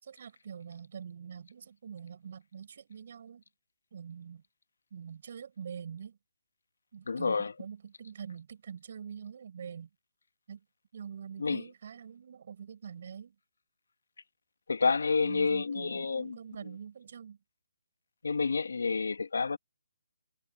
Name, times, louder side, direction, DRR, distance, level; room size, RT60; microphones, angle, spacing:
voice 1, 0.0-3.4 3.9-4.4 4.9-6.2 6.9-9.9 10.5-10.7 10.9-13.4 15.2-17.4, right 7 dB, 50° right, 5.1 m, -45 dB
voice 2, 7.1-7.5 11.4-11.6 14.7-16.4 18.2-19.6, left 4 dB, 85° left, 1.2 m, -29 dB
hypercardioid pair, 170°, 0 cm